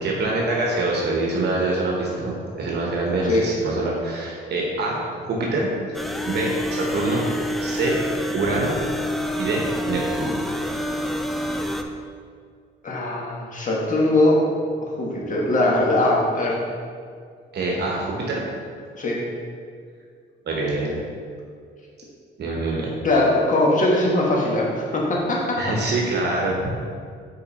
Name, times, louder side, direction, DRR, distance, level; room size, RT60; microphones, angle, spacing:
voice 1, 0.0-5.7 6.3-7.2 7.6-8.0 8.3-8.8 9.4-10.3 17.5-18.5 20.5-21.0 22.4-22.9 25.6-26.7, right 2 dB, 60° right, -2 dB, 1.1 m, -25 dB
sound 1, 5.9-11.8, equal, ahead, 0.4 m, -27 dB
voice 2, 12.8-14.4 15.0-16.6 19.0-19.2 23.0-25.6, left 2 dB, 40° left, -3 dB, 1.5 m, -21 dB
5.5 x 4.6 x 4.1 m, 2.1 s
cardioid pair, 90°, 20 cm